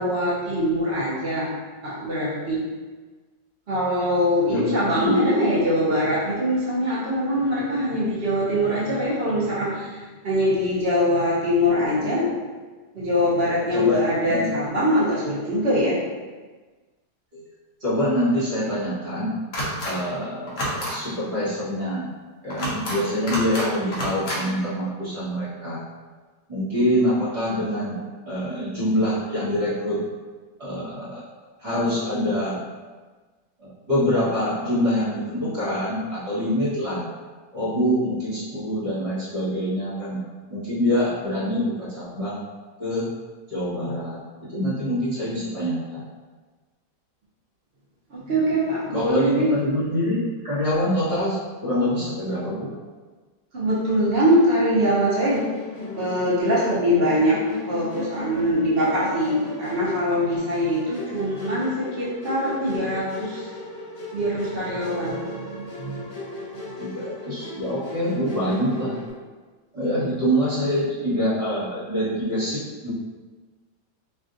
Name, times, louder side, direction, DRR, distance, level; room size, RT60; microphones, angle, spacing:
voice 1, 0.0-1.5 1.8-2.6 3.7-12.3 12.9-16.0 48.1-49.5 53.5-55.4 56.0-57.4 57.7-63.5 64.1-66.0 66.5-66.6, equal, 45° right, -8 dB, 0.9 m, -23 dB
voice 2, 4.5-5.1 13.7-14.5 17.3-17.4 17.8-19.3 19.8-22.0 22.4-25.8 26.5-28.0 28.3-30.0 30.6-31.2 31.6-32.6 33.6-37.0 37.5-40.2 40.5-42.4 42.8-43.1 43.5-44.2 44.5-46.0 48.9-52.7 66.8-68.9 69.7-72.9, equal, 25° right, -11 dB, 1.1 m, -25 dB
sound 1, 19.5-19.9 20.5-20.9 22.5-23.0 23.3-23.7 23.9-24.4, equal, 50° left, 0.8 m, -28 dB
Musical instrument, 55.3-69.1, left 3 dB, 80° left, 1.4 m, -36 dB
3.3 x 2.5 x 2.6 m, 1.4 s
omnidirectional pair, 1.8 m